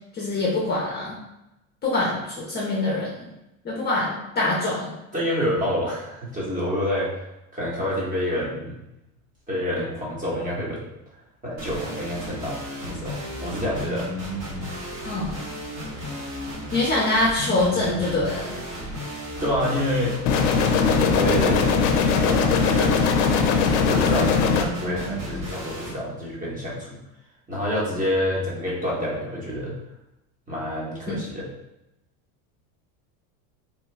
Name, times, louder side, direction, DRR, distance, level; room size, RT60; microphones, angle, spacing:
voice 1, 0.1-1.2 1.8-3.3 3.6-4.9 15.0-15.3 16.7-18.6, left 2 dB, 25° left, -4 dB, 0.6 m, -24 dB
voice 2, 5.1-7.2 7.5-8.7 9.5-10.8 11.4-14.1 19.4-20.1 20.5-21.8 22.1-23.2 23.8-27.0 27.5-29.7 30.5-31.5, equal, 20° right, -6 dB, 1.0 m, -28 dB
sound 1, 11.6-25.9, equal, 40° right, 1.2 m, -33 dB
sound 2, 20.3-24.7, left 5 dB, 65° left, 0.5 m, -20 dB
3.0 x 2.2 x 3.2 m, 0.90 s
supercardioid pair, 120°, 42 cm